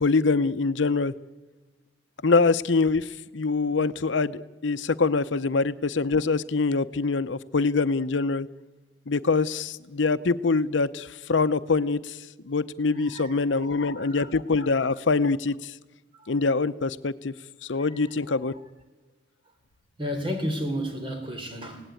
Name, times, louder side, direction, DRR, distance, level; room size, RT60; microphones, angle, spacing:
voice 1, 0.0-1.1 2.2-8.5 9.1-12.2 12.4-15.7 16.3-17.3 17.6-18.5, left 4 dB, 80° left, 0.7 m, -24 dB
voice 2, 13.0-14.3 14.6-14.7 16.1-16.3 17.8-18.1 18.4-18.5 20.0-21.9, equal, 25° right, 3.4 m, -34 dB
27.5 x 17.5 x 9.1 m
head